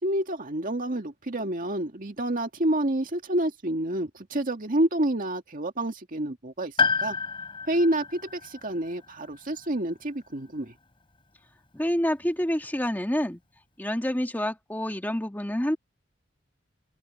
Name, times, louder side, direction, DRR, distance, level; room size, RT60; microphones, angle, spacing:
voice 1, 0.0-7.2 7.7-10.7, right 1 dB, 45° right, 2.1 m, -28 dB
Piano, 6.8-10.7 10.9-11.0 12.2-12.3, left 4 dB, 25° left, 3.3 m, -31 dB
voice 2, 11.7-13.4 13.8-15.8, equal, 10° left, 1.8 m, -27 dB
open air
head